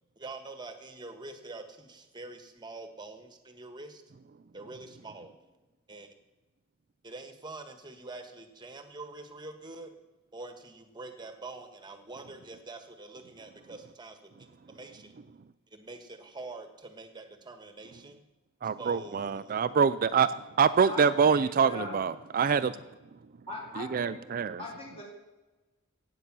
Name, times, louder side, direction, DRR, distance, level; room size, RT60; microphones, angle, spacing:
voice 1, 0.2-4.0 4.5-5.5 5.9-6.1 7.0-9.9 10.3-15.1 15.7-18.2 18.8-19.8, right 3 dB, 20° right, 7 dB, 1.4 m, -45 dB
voice 2, 18.6-20.3 20.6-22.8 23.8-24.6, right 6 dB, 40° right, 14 dB, 0.4 m, -25 dB
voice 3, 20.8-22.0 23.5-24.2 24.6-25.0, left 2 dB, 30° left, -3 dB, 3.5 m, -40 dB
16.0 x 8.7 x 6.1 m, 1.1 s
head